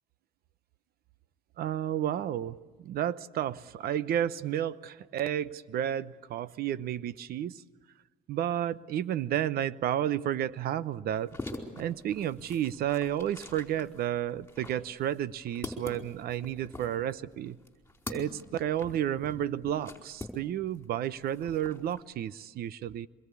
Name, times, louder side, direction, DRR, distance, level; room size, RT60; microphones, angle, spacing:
voice 1, 1.6-7.6 8.3-11.4 11.8-17.6 18.1-23.1, right 11 dB, 65° right, 16 dB, 0.9 m, -31 dB
sound 1, 11.1-20.8 21.1-22.0, left 2 dB, 15° left, 4.5 m, -44 dB
25.0 x 21.5 x 8.4 m, 1.3 s
cardioid pair, 110°, 17 cm